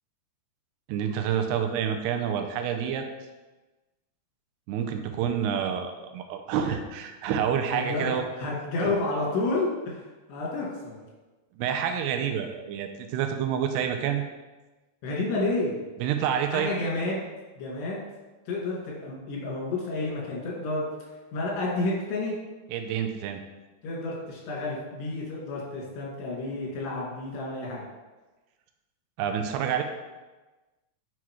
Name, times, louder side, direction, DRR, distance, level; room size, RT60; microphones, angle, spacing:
voice 1, 0.9-3.0 4.7-8.3 8.8-8.9 11.6-14.2 16.0-16.7 22.7-23.4 29.2-29.8, right 8 dB, 85° right, 6 dB, 2.6 m, -28 dB
voice 2, 7.7-10.0 10.3-11.0 15.0-15.8 16.5-17.2 17.6-18.0 18.5-20.9 21.3-22.4 23.8-27.8, left 2 dB, 75° left, -4 dB, 4.0 m, -30 dB
8.0 x 5.9 x 3.1 m, 1.2 s
omnidirectional pair, 5.0 m